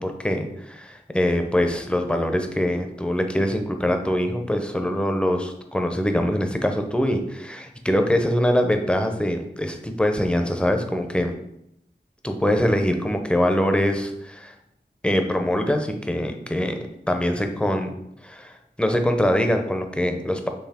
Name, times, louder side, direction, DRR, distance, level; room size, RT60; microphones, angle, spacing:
voice 1, 0.0-11.3 12.2-14.5 15.0-16.7 17.1-17.9 18.2-20.5, equal, 5° left, 5 dB, 0.5 m, -23 dB
4.7 x 3.1 x 3.5 m, 0.80 s
wide cardioid pair, 50°, 18 cm